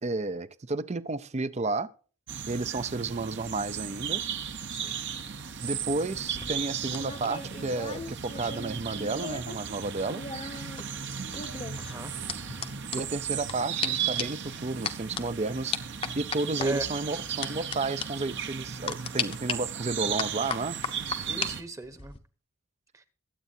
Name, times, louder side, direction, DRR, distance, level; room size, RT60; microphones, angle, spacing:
voice 1, 0.0-1.9 2.5-4.2 5.6-10.2 12.9-15.8 16.2-20.8, right 3 dB, 30° right, 0.5 m, -32 dB
sound 1, 2.3-21.6, right 8 dB, 55° right, 0.9 m, -36 dB
voice 2, 4.7-5.0 11.8-12.2 16.6-16.9 21.2-22.1 22.9-23.0, right 1 dB, 15° right, 1.0 m, -38 dB
sound 2, 6.1-9.6 9.8-13.5 13.8-13.9 14.2-14.4 14.8-15.2 15.7-16.7 17.4-17.8 18.0-18.1 18.9-19.5 20.2-21.5 21.8-22.2, left 5 dB, 25° left, 0.8 m, -35 dB
23.0 x 8.3 x 2.7 m
head